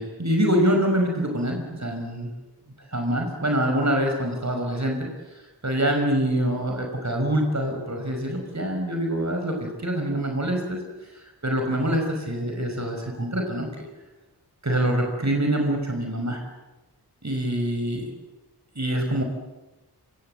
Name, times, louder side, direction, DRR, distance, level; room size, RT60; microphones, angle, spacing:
voice 1, 0.0-2.3 2.9-5.1 5.6-10.8 11.1-13.8 14.6-16.4 17.2-18.1 18.8-19.2, right 1 dB, 45° right, 2 dB, 5.4 m, -25 dB
26.5 x 24.5 x 7.9 m, 1.1 s
wide cardioid pair, 55°, 39 cm